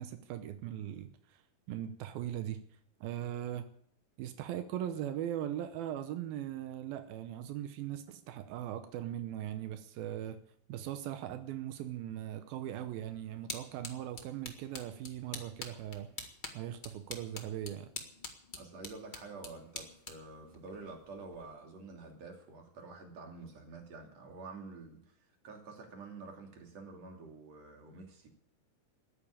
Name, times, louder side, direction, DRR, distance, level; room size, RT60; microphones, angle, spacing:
voice 1, 0.0-1.4 1.7-2.6 3.0-3.6 4.2-10.4 10.7-16.1 16.5-17.9, right 11 dB, 90° right, 8 dB, 2.8 m, -39 dB
sound 1, 12.8-21.5, left 3 dB, 25° left, 0.9 m, -47 dB
voice 2, 18.6-25.2 25.4-28.3, right 3 dB, 50° right, 2 dB, 3.8 m, -48 dB
14.0 x 10.5 x 8.6 m, 0.66 s
omnidirectional pair, 4.1 m